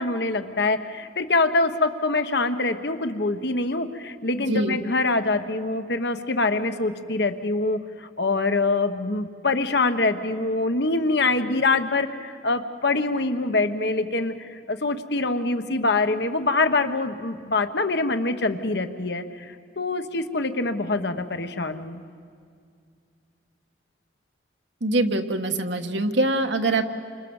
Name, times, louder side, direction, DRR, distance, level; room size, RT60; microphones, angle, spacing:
voice 1, 0.0-22.0, left 3 dB, 60° left, 8 dB, 1.2 m, -24 dB
voice 2, 4.5-4.8 24.8-26.8, right 2 dB, 75° right, 6 dB, 1.6 m, -23 dB
29.5 x 26.0 x 7.2 m, 2.3 s
head